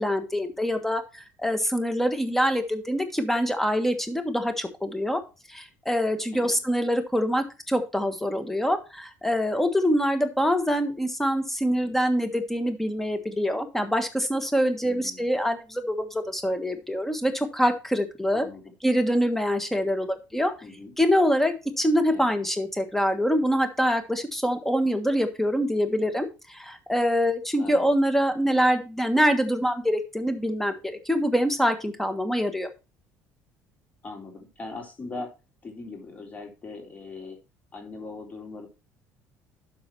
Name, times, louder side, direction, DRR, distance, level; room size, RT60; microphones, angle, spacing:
voice 1, 0.0-5.2 5.5-18.5 18.8-20.5 21.0-32.7, equal, 5° left, 8 dB, 1.5 m, -25 dB
voice 2, 14.8-15.4 18.3-18.7 20.6-20.9 22.1-22.3 27.6-27.9 34.0-35.3 35.6-37.4 37.7-38.7, left 3 dB, 25° left, 2 dB, 3.5 m, -40 dB
12.0 x 4.8 x 4.5 m, 0.29 s
cardioid pair, 120°, 6 cm